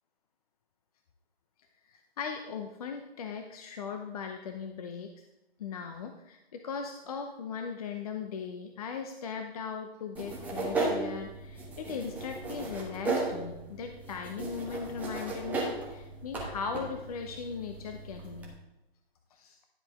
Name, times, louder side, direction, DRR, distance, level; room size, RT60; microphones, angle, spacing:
voice 1, 1.9-5.1 5.6-18.5 19.3-19.6, left 6 dB, 35° left, 5 dB, 0.7 m, -38 dB
sound 1, 10.1-18.5, right 3 dB, 5° right, 1.2 m, -36 dB
11.5 x 7.7 x 3.5 m, 0.95 s
hypercardioid pair, 145°, 31 cm